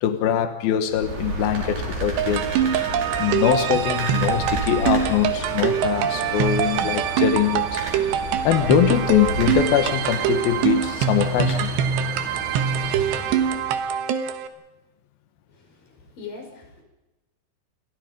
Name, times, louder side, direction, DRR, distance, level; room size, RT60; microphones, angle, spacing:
voice 1, 0.0-2.6 3.2-7.8 8.4-11.7, left 10 dB, 70° left, 2.3 m, -22 dB
sound 1, 0.9-13.9, right 2 dB, 50° right, 7.2 m, -32 dB
sound 2, 2.2-14.5, right 8 dB, 70° right, 3.1 m, -24 dB
voice 2, 15.6-16.8, left 5 dB, 45° left, 6.8 m, -41 dB
30.0 x 24.5 x 5.3 m
omnidirectional pair, 5.9 m